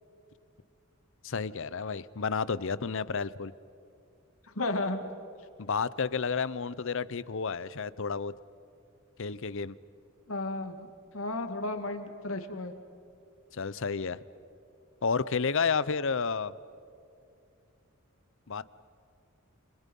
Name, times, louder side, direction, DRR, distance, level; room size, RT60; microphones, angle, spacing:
voice 1, 1.2-3.5 5.6-8.3 9.2-9.7 13.5-14.2 15.0-16.5 18.5-18.6, left 5 dB, 65° left, 18 dB, 0.7 m, -31 dB
voice 2, 4.6-5.0 10.3-10.9 11.1-12.7, left 2 dB, 85° left, 7 dB, 2.2 m, -33 dB
29.5 x 28.0 x 5.5 m, 2.6 s
head